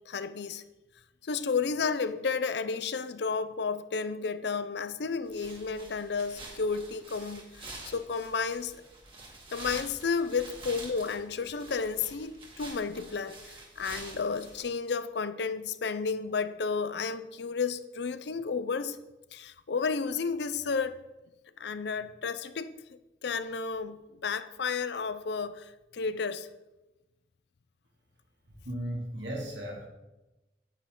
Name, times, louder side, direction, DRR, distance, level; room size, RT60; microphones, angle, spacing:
voice 1, 0.1-0.6 1.2-8.8 9.5-19.0 19.3-21.0 21.6-22.7 23.2-26.5, left 5 dB, 65° left, 0.5 m, -32 dB
sound 1, 5.3-14.6, right 2 dB, 25° right, 1.8 m, -47 dB
voice 2, 28.6-29.9, right 1 dB, 75° right, 2.4 m, -35 dB
9.7 x 9.0 x 3.8 m
head